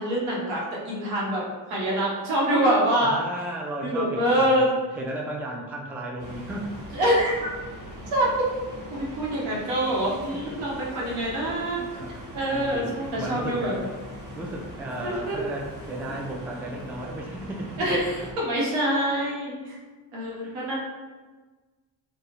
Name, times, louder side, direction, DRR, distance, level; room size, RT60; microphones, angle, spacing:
voice 1, 0.0-1.4 1.7-3.2 3.8-4.7 6.9-7.5 8.1-8.4 8.9-11.8 12.3-13.8 15.0-15.4 17.8-19.8 20.1-20.7, right 1 dB, 80° right, -4 dB, 1.1 m, -25 dB
voice 2, 3.0-6.8 10.1-10.6 11.8-13.8 14.3-18.3 20.4-20.6, right 1 dB, 5° right, 0 dB, 0.3 m, -35 dB
sound 1, 6.2-18.3, equal, 40° right, 1.2 m, -41 dB
2.6 x 2.3 x 3.1 m, 1.3 s
supercardioid pair, 60°, 50 cm